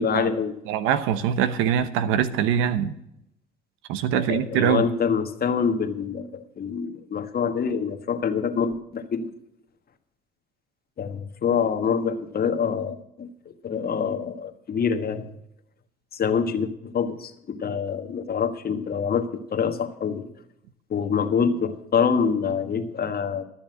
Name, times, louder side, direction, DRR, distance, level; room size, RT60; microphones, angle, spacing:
voice 1, 0.0-0.5 4.1-9.3 11.0-15.3 16.1-20.3 20.9-23.4, left 6 dB, 50° left, 8 dB, 1.4 m, -26 dB
voice 2, 0.7-3.0 3.9-4.9, right 9 dB, 80° right, 12 dB, 1.0 m, -23 dB
12.5 x 7.2 x 7.7 m, 0.78 s
supercardioid pair, 65°, 21 cm